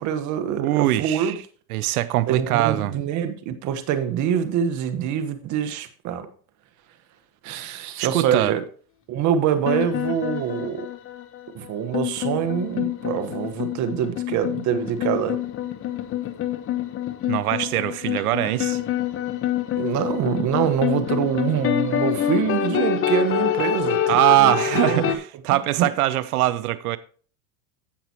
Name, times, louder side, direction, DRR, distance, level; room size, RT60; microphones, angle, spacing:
voice 1, 0.0-1.4 2.3-6.3 7.4-8.6 9.1-10.9 11.5-15.4 19.8-24.6 24.8-25.1 25.5-25.9, right 9 dB, 40° right, 1.4 m, -25 dB
voice 2, 0.6-1.4 1.7-3.0 8.0-8.6 17.3-18.8 24.1-27.0, right 15 dB, 85° right, 0.7 m, -22 dB
sound 1, 9.6-25.1, left 11 dB, 30° left, 1.1 m, -26 dB
16.0 x 6.0 x 3.0 m
supercardioid pair, 125°, 43 cm